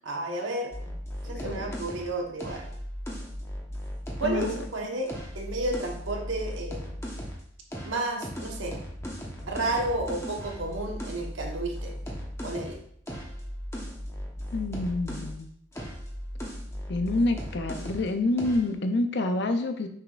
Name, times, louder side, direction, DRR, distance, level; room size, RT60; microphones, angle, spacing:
voice 1, 0.0-1.0 1.2-2.7 4.2-5.1 5.3-7.0 7.8-8.8 9.5-11.9 12.4-12.8, right 2 dB, 65° right, 1 dB, 1.2 m, -31 dB
sound 1, 0.7-4.7 5.1-7.4 7.7-15.4 15.7-18.1 18.4-18.7, equal, 15° left, 1.0 m, -37 dB
voice 2, 1.2-1.8 4.2-4.6 14.5-15.5 16.9-19.9, left 2 dB, 55° left, 8 dB, 0.5 m, -28 dB
6.5 x 6.0 x 2.4 m, 0.65 s
head